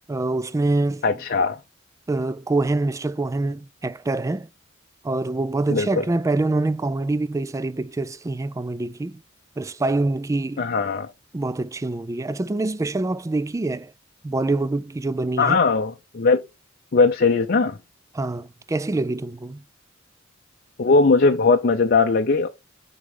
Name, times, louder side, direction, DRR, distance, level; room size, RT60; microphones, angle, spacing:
voice 1, 0.1-1.1 2.1-4.5 5.0-9.2 9.6-10.7 11.3-13.9 14.2-15.6 18.1-19.6, right 2 dB, 15° right, 0.3 m, -25 dB
voice 2, 1.0-1.6 5.7-6.0 10.6-11.1 15.4-16.4 16.9-17.8 20.8-22.5, left 4 dB, 50° left, 0.6 m, -19 dB
9.4 x 3.8 x 3.6 m
head